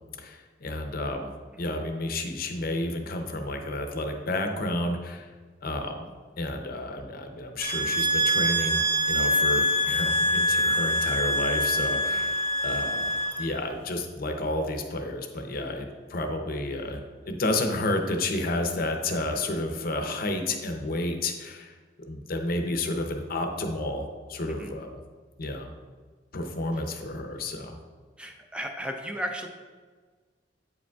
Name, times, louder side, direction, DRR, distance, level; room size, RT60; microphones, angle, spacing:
voice 1, 0.2-1.3 1.6-5.3 5.6-6.1 6.4-13.1 13.4-17.0 17.3-24.9 25.4-25.7 26.3-27.8, left 2 dB, 55° left, 5 dB, 0.6 m, -31 dB
sound 1, 7.6-13.5, equal, 55° right, 1.2 m, -25 dB
voice 2, 28.2-29.5, equal, 5° right, 4 dB, 0.4 m, -35 dB
8.3 x 5.0 x 2.3 m, 1.4 s
head